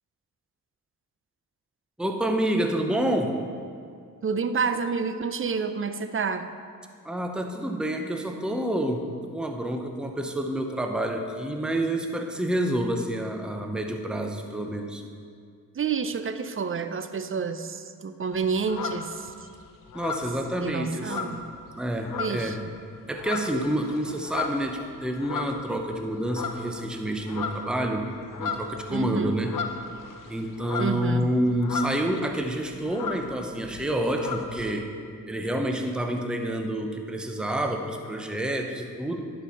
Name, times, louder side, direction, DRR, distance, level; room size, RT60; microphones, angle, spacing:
voice 1, 2.0-3.4 7.0-9.0 9.3-15.0 19.9-21.4 21.7-22.6 23.1-28.1 28.4-29.6 30.3-34.9 35.3-39.3, right 1 dB, ahead, 4 dB, 0.8 m, -28 dB
voice 2, 4.2-6.5 15.7-19.3 20.6-21.4 22.2-22.6 28.9-29.3 30.8-31.2, right 5 dB, 35° right, 10 dB, 0.6 m, -29 dB
sound 1, 18.3-19.5 19.9-21.7 22.0-22.6 23.0-25.9 26.3-26.8 27.1-32.2 32.4-32.5 32.7-34.6, left 5 dB, 60° left, 0.9 m, -35 dB
10.5 x 4.7 x 5.5 m, 2.3 s
cardioid pair, 60°, 36 cm